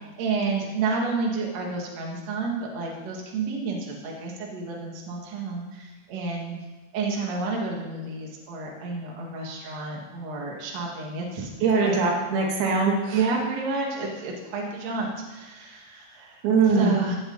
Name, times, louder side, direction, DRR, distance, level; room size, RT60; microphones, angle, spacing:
voice 1, 0.2-6.5 6.9-11.5 11.8-11.9 13.1-16.4 16.7-17.2, right 4 dB, 50° right, -1 dB, 2.6 m, -30 dB
voice 2, 11.6-13.2 16.4-17.0, right 4 dB, 80° right, -1 dB, 3.6 m, -22 dB
16.5 x 7.6 x 4.0 m, 1.2 s
omnidirectional pair, 4.4 m